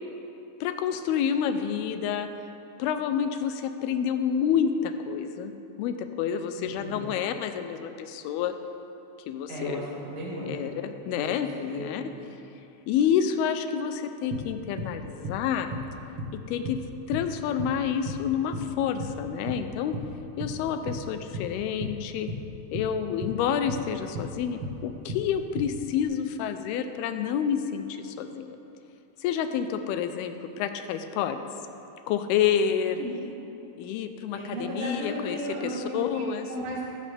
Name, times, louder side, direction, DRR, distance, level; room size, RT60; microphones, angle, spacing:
voice 1, 0.6-2.3 2.8-8.5 9.3-9.9 10.5-12.0 12.9-15.7 16.3-16.8 17.1-19.9 20.4-22.3 22.7-28.6 29.2-31.4 32.1-33.0 33.8-36.5, left 8 dB, 80° left, 8 dB, 2.5 m, -28 dB
voice 2, 6.6-7.1 9.5-10.7 11.1-11.2 11.7-12.2 32.9-33.2 34.3-36.8, right 1 dB, 80° right, -8 dB, 5.3 m, -35 dB
sound 1, 14.3-15.0 15.2-15.4 15.7-16.4 16.6-17.8 18.1-18.7 19.0-19.6 19.9-20.1 20.4-21.1 21.3-22.5 22.7-23.9 24.1-25.3 25.6-26.0, equal, 60° right, 1.3 m, -35 dB
15.0 x 13.5 x 3.4 m, 2.9 s
omnidirectional pair, 4.6 m